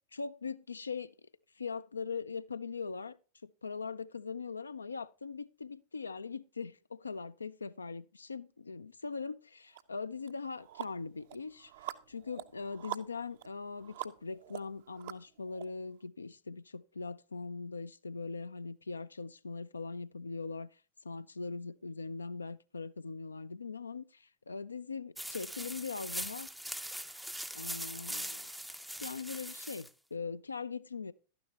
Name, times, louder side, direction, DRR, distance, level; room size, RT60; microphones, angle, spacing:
voice 1, 0.1-1.1 1.6-3.2 3.4-20.7 21.0-26.5 27.5-28.5 29.0-31.1, left 4 dB, 75° left, 0.4 m, -41 dB
sound 1, 9.7-9.8 10.3-15.6, right 14 dB, 55° right, 0.5 m, -45 dB
sound 2, 25.2-29.9, right 1 dB, ahead, 0.4 m, -41 dB
11.5 x 9.5 x 2.8 m
figure-of-eight pair, 90°, 0 cm